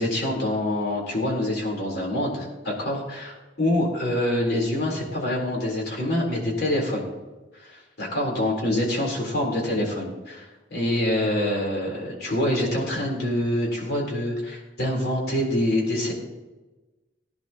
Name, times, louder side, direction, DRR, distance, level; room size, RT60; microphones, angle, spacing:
voice 1, 0.0-7.1 7.5-16.1, left 1 dB, 60° left, -2 dB, 4.0 m, -26 dB
19.0 x 10.5 x 3.0 m, 1.2 s
head